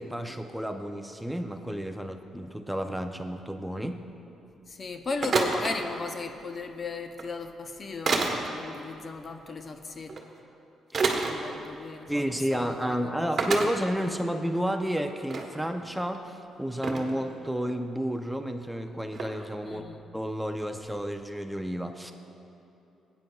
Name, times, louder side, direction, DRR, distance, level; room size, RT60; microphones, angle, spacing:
voice 1, 0.0-4.0 12.1-19.8 20.1-22.1, equal, 5° right, 6 dB, 0.5 m, -31 dB
voice 2, 4.7-10.1 11.1-13.3 19.6-20.0, left 3 dB, 40° left, 7 dB, 0.6 m, -37 dB
sound 1, 5.2-5.7 7.1-7.2 8.1-8.4 10.1-10.2 10.9-11.3 12.2-12.3 12.6-12.7 13.4-13.7 14.4-14.5 14.9-15.5 16.1-16.2 16.8-17.1 19.1-19.3, right 4 dB, 45° right, 1.2 m, -27 dB
16.5 x 9.1 x 2.3 m, 2.9 s
cardioid pair, 90°, 0 cm